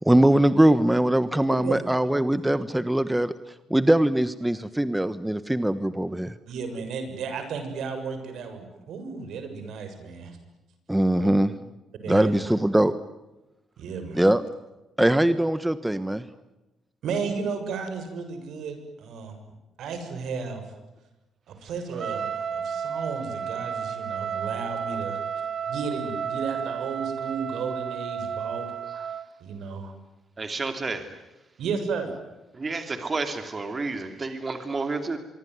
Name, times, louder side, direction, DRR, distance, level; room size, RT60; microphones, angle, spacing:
voice 1, 0.0-3.3 3.7-6.3 10.9-11.5 12.1-12.9 14.1-14.4 15.0-16.2, right 1 dB, 10° right, 13 dB, 1.2 m, -21 dB
voice 2, 6.5-10.4 11.2-11.3 12.0-12.5 13.8-14.2 17.0-19.3 19.8-20.6 21.5-25.2 25.7-28.7 29.4-29.9 31.6-32.1, right 5 dB, 75° right, 8 dB, 6.9 m, -33 dB
Trumpet, 21.9-29.3, right 7 dB, 50° right, 1.5 m, -32 dB
voice 3, 30.4-31.0 32.6-35.2, right 3 dB, 30° right, 7 dB, 3.0 m, -30 dB
25.0 x 24.0 x 9.6 m, 1.0 s
cardioid pair, 90°, 0 cm